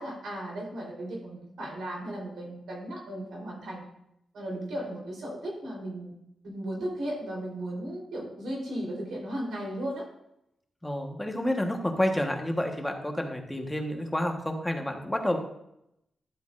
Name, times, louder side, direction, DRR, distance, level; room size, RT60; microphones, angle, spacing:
voice 1, 0.0-3.8 4.3-6.1 6.4-10.0, right 1 dB, 90° right, -3 dB, 3.5 m, -36 dB
voice 2, 10.8-15.4, left 1 dB, 10° left, 3 dB, 1.2 m, -29 dB
11.5 x 7.9 x 2.5 m, 0.80 s
cardioid pair, 100°, 0 cm